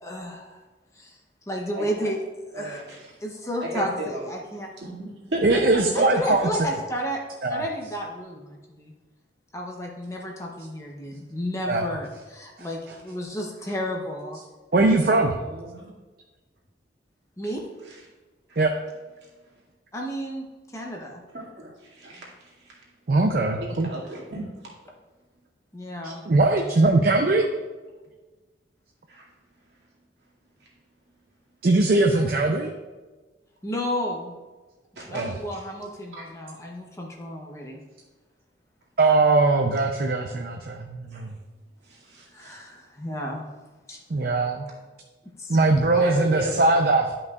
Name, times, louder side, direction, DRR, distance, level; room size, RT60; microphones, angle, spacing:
voice 1, 0.0-0.6 1.0-1.2 1.5-2.2 2.5-2.8 3.2-4.7 5.9-7.2 7.5-8.9 9.5-14.4 15.1-15.3 17.4-17.7 19.9-20.5 20.7-21.2 25.7-26.2 33.6-34.3 35.0-37.8 42.3-43.5 43.9-44.0 45.4-45.6 45.9-46.0, equal, 15° left, 0 dB, 0.8 m, -32 dB
voice 2, 1.7-2.1 2.5-3.1 3.6-4.2 4.8-6.5 15.4-15.9 17.8-18.0 18.5-18.6 21.3-22.8 23.5-24.7 29.1-29.2 35.0-35.6 36.1-36.2 41.1-41.3 41.8-42.6 44.2-44.5 46.0-46.7, right 1 dB, 75° right, -5 dB, 2.2 m, -34 dB
voice 3, 5.4-6.5 7.4-7.6 11.7-11.9 14.7-15.3 18.6-18.7 23.1-23.9 26.0-27.4 31.6-32.7 35.1-35.4 39.0-41.4 44.1-44.7 45.5-47.1, right 2 dB, 50° right, 3 dB, 0.5 m, -21 dB
11.5 x 5.4 x 2.4 m, 1.3 s
head